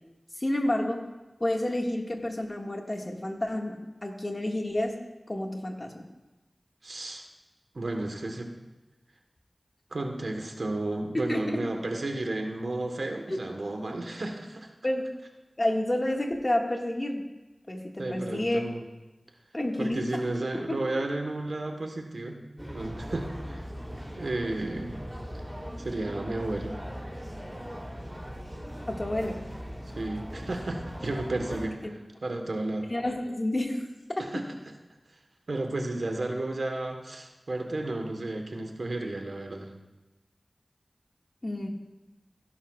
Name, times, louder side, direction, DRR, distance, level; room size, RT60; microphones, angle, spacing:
voice 1, 0.4-1.0 1.4-5.0 5.3-6.0 11.1-11.6 13.3-13.4 14.8-15.0 15.6-17.2 17.7-18.6 19.5-20.2 20.7-20.8 28.9-29.4 32.9-33.9 34.2-34.4 41.4-41.7, left 1 dB, 40° left, 1 dB, 1.8 m, -29 dB
voice 2, 6.8-7.2 7.7-8.6 9.9-14.7 18.0-18.8 19.8-22.4 22.7-23.6 24.1-25.0 25.8-26.8 29.9-32.9 34.2-34.7 35.5-39.7, right 2 dB, 85° right, 4 dB, 1.2 m, -33 dB
sound 1, 22.6-31.7, equal, 10° right, 3.1 m, -39 dB
16.5 x 10.5 x 2.4 m, 1.0 s
wide cardioid pair, 45°, 0 cm